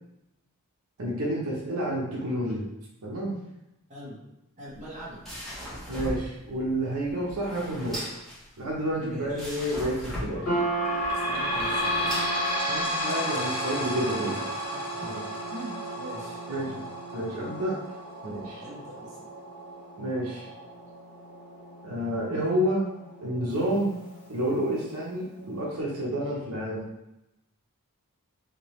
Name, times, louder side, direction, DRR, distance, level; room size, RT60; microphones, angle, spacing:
voice 1, 1.0-2.7 3.0-3.3 5.9-8.2 8.6-10.6 12.7-14.5 15.0-15.2 16.5-16.7 17.1-17.8 18.2-18.6 20.0-20.5 21.8-22.8 23.2-23.9 24.3-26.9, equal, 75° right, -4 dB, 0.8 m, -29 dB
voice 2, 4.6-5.3 9.0-9.7 11.1-12.3 14.7-15.2 15.5-16.8 18.6-19.2, equal, 35° right, -6 dB, 1.1 m, -42 dB
sound 1, 4.7-13.0, equal, ahead, 1.2 m, -39 dB
sound 2, 10.4-24.9, right 3 dB, 80° left, 1.1 m, -38 dB
sound 3, 10.4-23.5 24.1-24.2 24.5-24.6 25.4-25.5, left 1 dB, 25° left, 0.9 m, -33 dB
3.6 x 2.8 x 3.0 m, 0.90 s
head